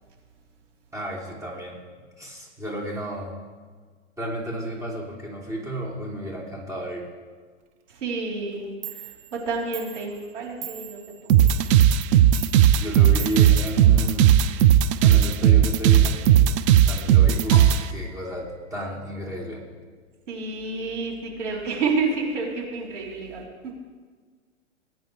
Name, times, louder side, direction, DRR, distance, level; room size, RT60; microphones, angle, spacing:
voice 1, 0.9-1.8 2.2-3.3 4.2-7.0 12.8-14.3 15.0-16.2 16.9-19.6, equal, 10° right, -4 dB, 3.1 m, -32 dB
voice 2, 7.9-11.0 11.4-11.5 20.3-23.4, right 3 dB, 75° right, -3 dB, 4.0 m, -29 dB
Clock, 8.5-8.6 8.8-14.5, right 13 dB, 50° right, 1.2 m, -42 dB
sound 1, 11.3-17.8, right 10 dB, 30° right, 0.4 m, -16 dB
sound 2, 17.5-18.9, left 3 dB, 10° left, 0.7 m, -38 dB
19.5 x 9.3 x 3.4 m, 1.5 s
hypercardioid pair, 120°, 37 cm